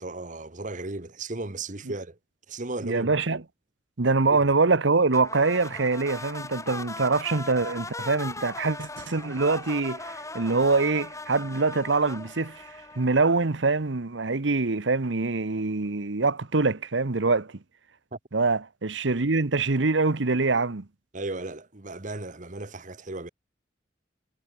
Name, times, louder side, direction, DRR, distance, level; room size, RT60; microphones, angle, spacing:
voice 1, 0.0-2.2 2.5-3.1 4.3-4.5 18.1-18.2 21.1-23.3, right 2 dB, 45° right, 1.6 m, -35 dB
voice 2, 2.8-3.4 4.0-12.7 13.0-17.5 18.3-20.9, right 3 dB, 80° right, 1.1 m, -24 dB
sound 1, 5.1-13.6, left 3 dB, 15° left, 2.4 m, -39 dB
head